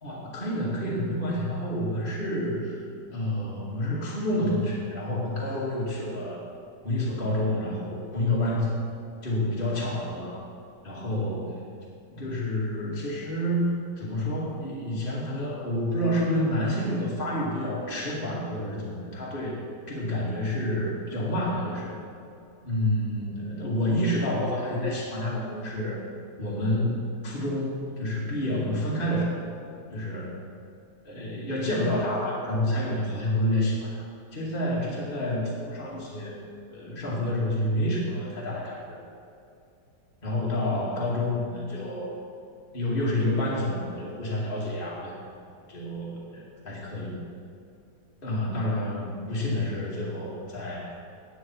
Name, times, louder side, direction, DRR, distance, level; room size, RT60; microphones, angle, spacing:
voice 1, 0.0-2.8 3.1-6.4 6.8-8.8 9.2-10.4 10.8-11.6 12.1-19.6 19.9-22.0 22.6-26.0 26.4-29.4 29.9-30.4 31.0-34.0 34.3-36.4 36.7-39.0 40.2-42.1 42.7-45.1 45.7-47.2 48.2-50.9, left 1 dB, 30° left, -6 dB, 2.6 m, -29 dB
18.0 x 9.2 x 4.7 m, 2.5 s
omnidirectional pair, 2.0 m